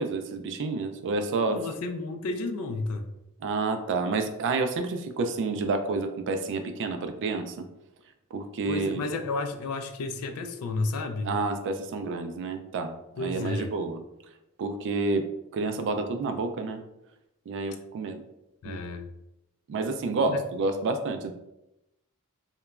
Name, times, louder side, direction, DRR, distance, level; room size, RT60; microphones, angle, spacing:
voice 1, 0.0-1.6 3.4-7.7 8.3-9.0 11.2-14.0 14.6-16.8 17.5-18.2 18.6-18.8 19.7-21.3, right 3 dB, 55° right, 7 dB, 0.3 m, -29 dB
voice 2, 1.5-3.1 8.7-11.3 13.2-13.7 18.6-19.1 20.3-20.4, left 3 dB, 75° left, 7 dB, 0.3 m, -32 dB
2.9 x 2.2 x 2.3 m, 0.89 s
head